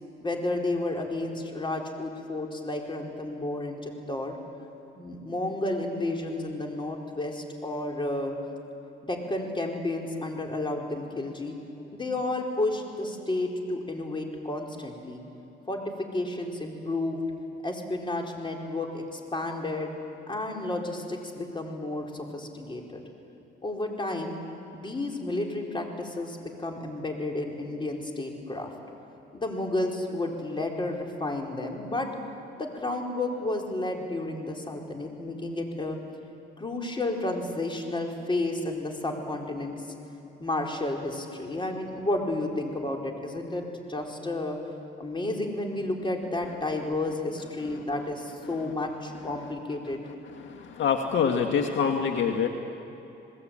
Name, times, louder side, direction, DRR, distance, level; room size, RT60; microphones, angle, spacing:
voice 1, 0.2-4.4 4.9-8.4 9.0-11.5 11.9-15.2 15.7-15.8 16.1-17.2 17.6-19.9 20.3-23.0 23.6-24.4 24.7-28.7 29.3-32.1 32.6-36.0 36.6-39.7 40.4-44.6 45.0-50.0, left 2 dB, 25° left, 1 dB, 4.4 m, -31 dB
voice 2, 50.5-52.5, left 6 dB, 70° left, 4 dB, 1.9 m, -25 dB
28.0 x 20.0 x 8.9 m, 3.0 s
cardioid pair, 90°, 20 cm